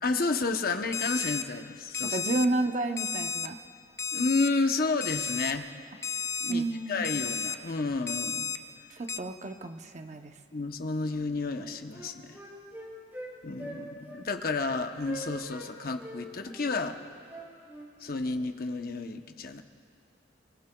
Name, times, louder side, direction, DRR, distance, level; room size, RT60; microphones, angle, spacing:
voice 1, 0.0-2.2 4.1-5.7 6.4-8.5 10.5-12.4 13.4-17.0 18.0-19.6, left 3 dB, 55° left, 6 dB, 0.8 m, -31 dB
Alarm, 0.9-1.4 1.9-2.5 3.0-3.5 4.0-4.5 5.0-5.5 6.0-6.5 7.0-7.6 8.1-8.6 9.1-9.2, left 5 dB, 15° left, 0.4 m, -32 dB
voice 2, 2.1-3.6 6.5-7.1 8.9-10.3, right 2 dB, 40° right, 6 dB, 0.7 m, -31 dB
Wind instrument woodwind instrument, 11.1-11.2 11.5-13.3 13.6-13.8 14.1-14.2 14.6-14.7 15.0-15.7 16.0-17.9, right 1 dB, 10° right, 4.2 m, -43 dB
30.0 x 19.5 x 2.3 m, 2.5 s
head